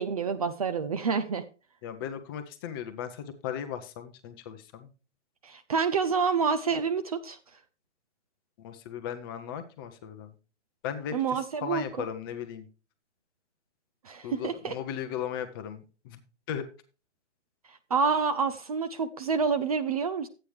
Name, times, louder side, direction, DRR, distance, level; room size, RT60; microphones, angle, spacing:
voice 1, 0.0-1.4 5.4-7.4 11.1-12.1 14.0-14.7 17.7-20.3, right 5 dB, 30° right, 0.5 m, -28 dB
voice 2, 1.8-4.9 8.6-10.3 10.8-12.7 14.2-16.2 16.5-16.6, left 9 dB, 20° left, 0.7 m, -37 dB
11.5 x 8.7 x 3.2 m
hypercardioid pair, 140°, 36 cm